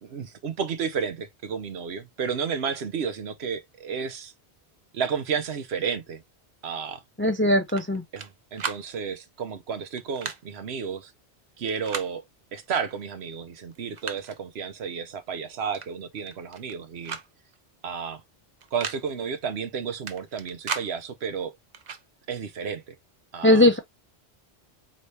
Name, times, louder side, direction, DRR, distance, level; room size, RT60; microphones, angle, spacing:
voice 1, 0.0-4.3 4.9-6.2 6.6-7.0 8.1-11.1 11.6-12.2 12.5-17.2 17.8-18.2 18.7-21.5 22.3-22.9 23.3-23.7, right 6 dB, 70° right, 1.0 m, -32 dB
voice 2, 7.2-8.0 23.4-23.8, left 1 dB, 15° left, 0.4 m, -19 dB
sound 1, 7.7-8.3 8.6-8.8 10.0-10.4 11.7-12.1 13.2-13.3 13.7-14.4 15.7-15.9 16.2-16.8 17.1-17.3 17.5-17.6 18.6-19.0 20.1-20.9 21.7-22.0, right 6 dB, 50° right, 0.7 m, -35 dB
4.1 x 3.1 x 3.2 m
omnidirectional pair, 1.1 m